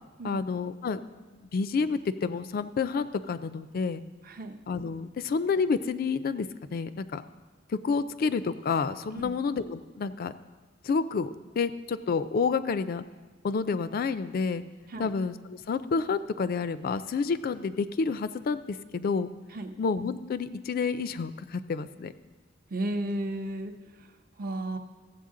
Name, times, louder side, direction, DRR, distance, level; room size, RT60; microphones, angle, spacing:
voice 1, 0.2-1.0 1.4-4.0 4.7-7.2 7.7-10.3 10.8-13.0 13.4-14.6 15.0-19.3 19.8-22.1, left 5 dB, 50° left, 13 dB, 0.4 m, -29 dB
voice 2, 4.2-4.6 9.1-9.4 14.9-15.1 19.5-19.8 22.7-23.7 24.4-24.8, right 1 dB, 50° right, 6 dB, 0.7 m, -33 dB
14.5 x 7.9 x 3.7 m, 1.3 s
head